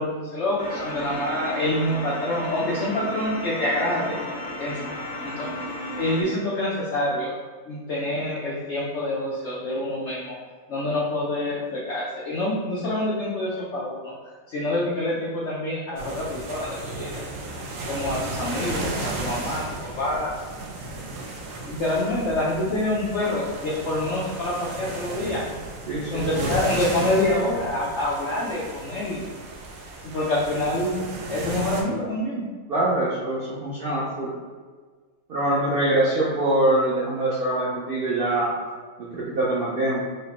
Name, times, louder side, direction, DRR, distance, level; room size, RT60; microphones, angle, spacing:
voice 1, 0.0-4.2 4.6-4.8 5.2-5.7 5.9-7.3 7.7-10.4 10.7-14.1 14.5-17.2 17.8-19.6 20.0-20.3 21.6-25.4 26.1-29.2 30.0-32.4, left 1 dB, 65° left, -6 dB, 0.7 m, -26 dB
sound 1, 0.6-6.2, left 1 dB, 85° left, 1.3 m, -34 dB
sound 2, 16.0-31.8, right 2 dB, 65° right, 0.9 m, -34 dB
voice 2, 25.9-26.5 32.7-34.3 35.3-38.5 39.0-40.0, right 1 dB, 90° right, -6 dB, 0.5 m, -24 dB
4.8 x 2.1 x 2.8 m, 1.5 s
omnidirectional pair, 1.7 m